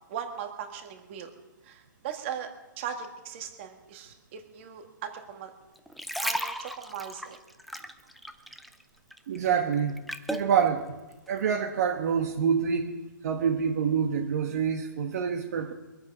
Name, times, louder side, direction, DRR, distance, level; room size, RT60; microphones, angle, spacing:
voice 1, 0.1-1.3 1.6-2.5 2.8-5.5 6.2-7.4, right 8 dB, 35° right, 5 dB, 2.0 m, -38 dB
sound 1, 5.8-8.8 9.1-10.5 11.1-11.3, equal, ahead, 0.5 m, -35 dB
voice 2, 9.3-10.0 10.3-11.0 11.3-12.9 13.2-15.7, right 7 dB, 50° right, 2 dB, 1.3 m, -26 dB
24.0 x 8.8 x 5.5 m, 1.1 s
hypercardioid pair, 160°, 11 cm